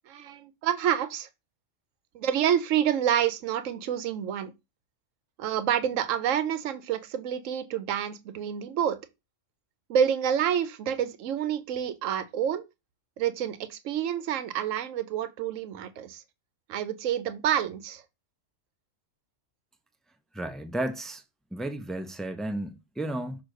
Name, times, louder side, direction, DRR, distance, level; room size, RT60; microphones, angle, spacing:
voice 1, 0.1-1.3 2.1-4.5 5.4-9.0 9.9-12.7 13.2-16.2 16.7-18.0, right 9 dB, 80° right, 1.1 m, -28 dB
voice 2, 20.3-21.2 21.5-23.4, right 1 dB, ahead, 0.4 m, -33 dB
6.4 x 3.1 x 5.1 m
omnidirectional pair, 1.3 m